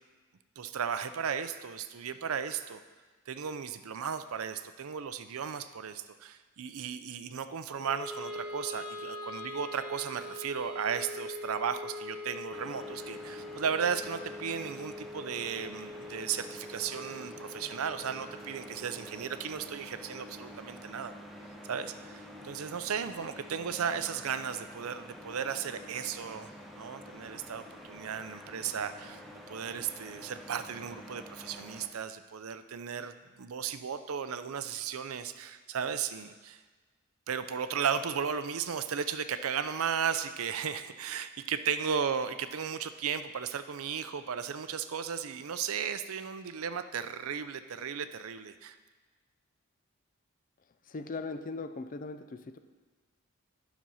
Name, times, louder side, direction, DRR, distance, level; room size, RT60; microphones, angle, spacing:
voice 1, 0.6-2.8 3.3-21.1 21.7-29.2 29.5-36.6 37.3-48.8, right 7 dB, 70° right, 11 dB, 0.5 m, -35 dB
Wind instrument woodwind instrument, 7.8-20.0, left 1 dB, 20° left, 1.3 m, -43 dB
sound 1, 12.5-31.9, equal, ahead, 0.8 m, -48 dB
voice 2, 50.9-52.6, left 3 dB, 40° left, 9 dB, 0.5 m, -39 dB
10.5 x 6.2 x 5.5 m, 1.3 s
head